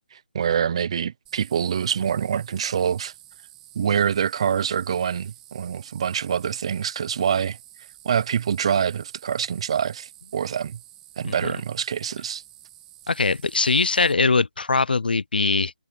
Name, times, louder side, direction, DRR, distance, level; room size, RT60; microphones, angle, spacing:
voice 1, 0.1-3.1 3.7-7.6 8.0-10.8 11.2-12.4, right 8 dB, 40° right, 0.7 m, -25 dB
sound 1, 1.3-14.1, right 13 dB, 10° right, 2.1 m, -50 dB
voice 2, 13.1-15.7, left 4 dB, 90° left, 0.6 m, -21 dB
hypercardioid pair, 165°, 5 cm